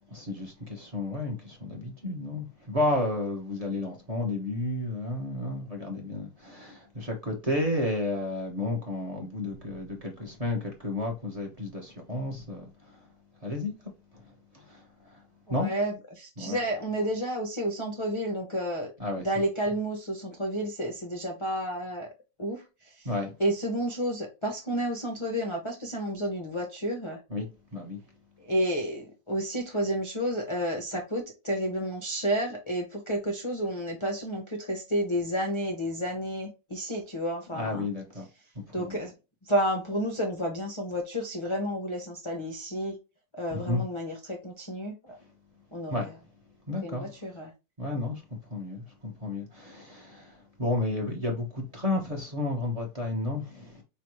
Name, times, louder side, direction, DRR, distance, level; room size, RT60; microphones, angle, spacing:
voice 1, 0.1-13.1 13.4-13.7 14.1-15.2 15.5-15.7 16.4-16.6 19.0-19.3 23.0-23.3 27.3-27.5 27.7-28.0 37.5-38.3 38.5-39.0 43.5-43.8 45.9-46.1 46.7-47.1 47.8-53.8, left 2 dB, 25° right, 1.0 m, -32 dB
voice 2, 15.5-18.9 19.2-22.1 22.4-23.1 23.4-27.2 28.4-37.9 38.7-39.1 39.5-42.9 43.3-45.2 45.7-46.1 46.8-47.5, equal, 35° left, 0.4 m, -31 dB
4.6 x 3.3 x 3.1 m
omnidirectional pair, 2.0 m